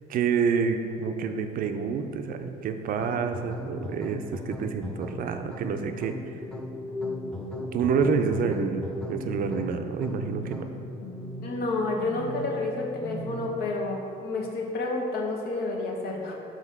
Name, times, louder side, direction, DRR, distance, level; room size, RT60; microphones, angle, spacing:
voice 1, 0.1-6.2 7.7-10.7, right 6 dB, 55° right, 7 dB, 0.5 m, -28 dB
sound 1, 3.0-10.9, left 1 dB, 5° left, 0.4 m, -39 dB
sound 2, 6.3-13.7, left 1 dB, 85° left, 1.2 m, -37 dB
voice 2, 11.4-16.3, left 2 dB, 70° left, 0 dB, 1.1 m, -30 dB
5.0 x 3.8 x 5.5 m, 2.6 s
cardioid pair, 110°, 17 cm